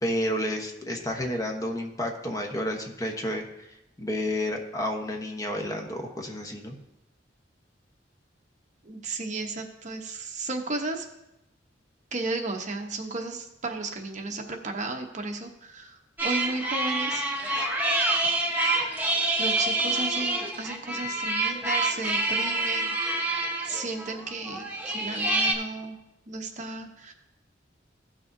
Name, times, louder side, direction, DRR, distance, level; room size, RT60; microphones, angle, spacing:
voice 1, 0.0-3.4 4.0-6.7, left 1 dB, 20° left, 2 dB, 1.0 m, -30 dB
voice 2, 8.8-11.0 12.1-17.2 19.4-22.9 23.7-26.0 26.3-27.1, right 3 dB, 45° right, 3 dB, 0.9 m, -34 dB
sound 1, 16.2-25.5, right 2 dB, 10° right, 1.1 m, -27 dB
16.0 x 6.3 x 2.7 m, 0.89 s
head